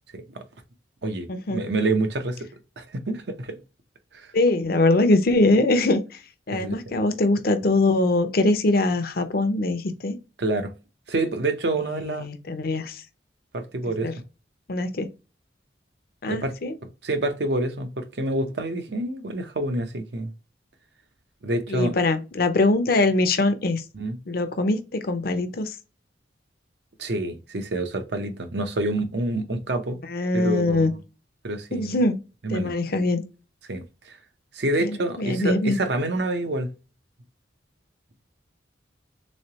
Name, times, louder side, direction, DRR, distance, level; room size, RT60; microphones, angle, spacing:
voice 1, 0.1-0.4 1.0-2.5 2.8-3.6 4.1-4.3 6.5-7.0 10.4-10.7 11.1-12.3 13.5-14.1 16.3-16.6 17.0-20.3 21.4-21.9 23.9-24.2 27.0-30.0 30.3-31.0 31.4-32.0 32.4-32.7 33.7-34.2 34.5-36.7, right 2 dB, 65° right, 0.7 m, -27 dB
voice 2, 1.3-1.6 4.3-6.0 6.5-10.2 11.9-13.0 14.0-14.1 14.7-15.1 16.2-16.7 21.7-23.8 24.3-25.8 30.1-30.9 31.7-32.2 32.5-33.2 34.8-35.8, left 2 dB, 55° left, 0.7 m, -22 dB
3.7 x 3.2 x 2.8 m
head